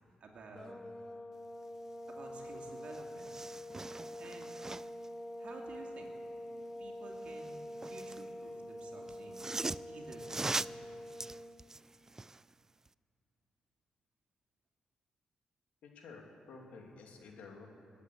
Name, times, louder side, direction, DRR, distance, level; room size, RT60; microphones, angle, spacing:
voice 1, 0.2-0.8 2.1-3.3 4.2-4.5 5.4-6.1 6.8-9.4 9.9-10.8, right 3 dB, 60° right, 1 dB, 2.5 m, -52 dB
sound 1, 0.5-11.6, equal, 20° left, 0.9 m, -46 dB
sound 2, 2.5-2.6 2.8-5.1 7.2-8.3 9.1-12.4 12.9-13.0, right 3 dB, 20° right, 0.3 m, -41 dB
voice 2, 15.8-17.7, left 4 dB, 80° left, 1 dB, 2.5 m, -51 dB
21.0 x 8.4 x 8.3 m, 2.5 s
cardioid pair, 80°, 2 cm